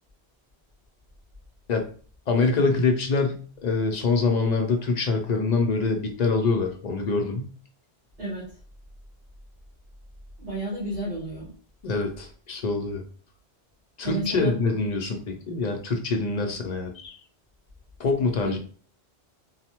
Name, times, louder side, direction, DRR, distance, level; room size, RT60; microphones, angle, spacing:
voice 1, 2.3-7.5 11.8-13.0 14.0-17.2 18.0-18.6, left 3 dB, 55° left, 3 dB, 0.5 m, -25 dB
voice 2, 10.4-11.5 14.0-14.6 18.4-18.6, right 1 dB, 60° right, -6 dB, 1.3 m, -31 dB
3.1 x 2.0 x 2.8 m, 0.42 s
omnidirectional pair, 1.1 m